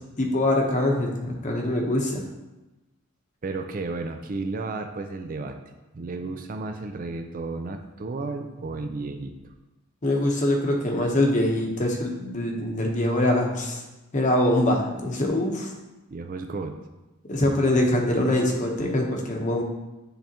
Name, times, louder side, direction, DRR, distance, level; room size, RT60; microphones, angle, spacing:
voice 1, 0.2-2.2 10.0-13.8 14.1-15.7 17.3-19.6, left 1 dB, 35° left, 1 dB, 0.9 m, -23 dB
voice 2, 3.4-5.6 5.9-9.5 16.1-16.8, right 3 dB, 40° right, 6 dB, 0.4 m, -33 dB
10.0 x 3.5 x 2.9 m, 1.0 s
head